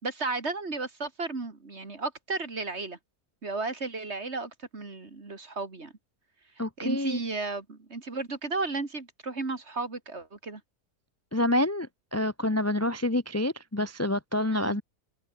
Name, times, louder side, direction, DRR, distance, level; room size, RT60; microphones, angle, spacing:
voice 1, 0.0-3.0 3.4-5.9 6.8-10.6 14.5-14.8, right 3 dB, 45° right, 2.9 m, -34 dB
voice 2, 6.6-7.2 11.3-14.8, left 1 dB, 10° left, 0.9 m, -27 dB
omnidirectional pair, 1.6 m